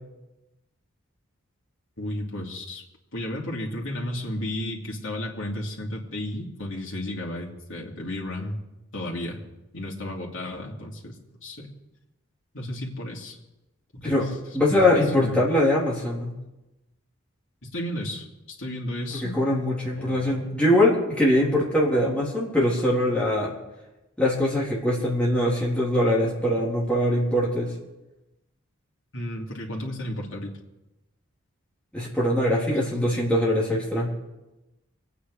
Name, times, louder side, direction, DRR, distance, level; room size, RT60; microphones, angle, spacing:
voice 1, 2.0-2.8 3.1-8.6 8.9-9.4 9.7-11.7 12.5-13.4 13.9-14.3 14.7-15.4 17.6-19.4 19.9-20.4 29.1-30.5 32.7-32.8, left 1 dB, 65° left, -2 dB, 2.9 m, -33 dB
voice 2, 14.5-16.3 19.2-23.5 24.2-27.7 31.9-34.1, left 1 dB, 5° left, -6 dB, 3.6 m, -22 dB
24.5 x 9.4 x 4.9 m, 1.0 s
head